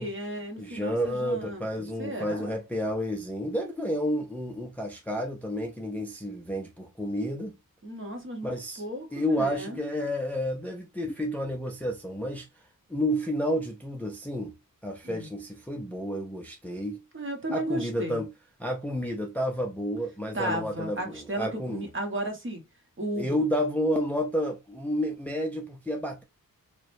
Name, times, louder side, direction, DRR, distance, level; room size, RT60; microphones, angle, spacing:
voice 1, 0.0-1.6 2.0-2.6 7.8-8.5 8.8-9.8 15.0-15.3 17.1-18.2 20.3-22.6 23.0-23.4, right 1 dB, 35° right, 1.0 m, -34 dB
voice 2, 0.6-7.5 8.4-8.8 9.1-12.5 12.9-14.5 14.8-17.0 17.5-18.3 18.6-21.9 23.2-26.2, equal, 5° left, 0.5 m, -30 dB
4.7 x 2.2 x 2.6 m
wide cardioid pair, 125°, 34 cm